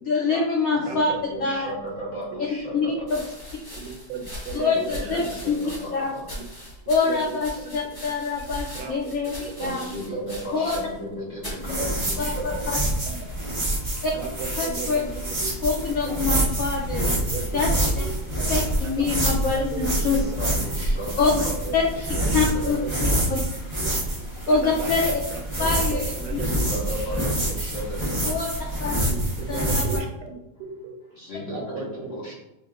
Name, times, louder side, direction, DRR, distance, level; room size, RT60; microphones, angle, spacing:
voice 1, 0.0-1.1 1.4-1.7 2.7-2.9 3.1-3.2 4.5-5.5 5.9-6.0 6.9-9.9 10.5-10.6 12.2-12.3 14.0-14.1 14.6-15.0 15.6-17.1 17.5-18.0 18.5-20.2 21.2-21.4 21.7-21.8 22.3-23.4 24.5-25.2 25.6-26.4 28.2-28.5 28.8-29.1 29.5-30.0, left 4 dB, 80° left, -1 dB, 0.7 m, -25 dB
voice 2, 0.7-3.2 4.4-6.2 6.6-6.8 8.3-8.5 9.6-12.8 13.3-14.3 14.6-15.9 17.1-17.5 19.9-22.2 22.5-23.0 23.8-24.5 26.4-28.4 29.4-30.0 30.5-30.7 31.0-32.3, equal, 50° left, -5 dB, 0.9 m, -37 dB
sound 1, 1.9-2.0 3.0-11.1 11.4-11.7 12.4-12.9, equal, 20° left, 0.7 m, -39 dB
voice 3, 3.8-5.2 7.0-7.7 8.7-8.9 9.6-9.8 11.7-11.9 12.4-12.5 14.1-15.5 16.1-16.2 17.0-17.7 18.0-18.1 18.4-18.5 19.0-19.1 19.6-20.1 21.7-21.8 22.2-22.3 22.6-23.2 23.8-23.9 24.5-24.9 25.3-26.7 29.1-30.3 30.8-30.9 31.5-32.2, right 4 dB, 75° right, 3 dB, 1.2 m, -35 dB
sound 2, 11.6-30.0, right 1 dB, 35° right, 0.4 m, -26 dB
5.9 x 2.1 x 2.4 m, 0.90 s
omnidirectional pair, 2.1 m